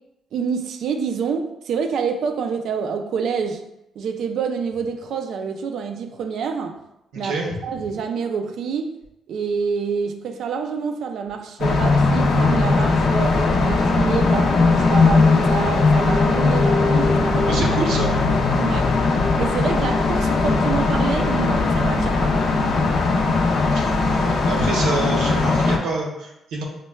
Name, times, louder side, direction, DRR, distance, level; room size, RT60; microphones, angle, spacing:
voice 1, 0.3-3.6 4.0-6.8 7.2-9.0 9.3-17.7 18.5-19.0 19.4-22.4, right 6 dB, 70° right, 0.3 m, -27 dB
voice 2, 7.1-7.6 17.5-18.1 23.7-26.6, right 3 dB, 85° right, 0.7 m, -27 dB
sound 1, 11.6-25.8, left 3 dB, 70° left, 0.5 m, -19 dB
5.1 x 2.1 x 2.2 m
cardioid pair, 90°, 0 cm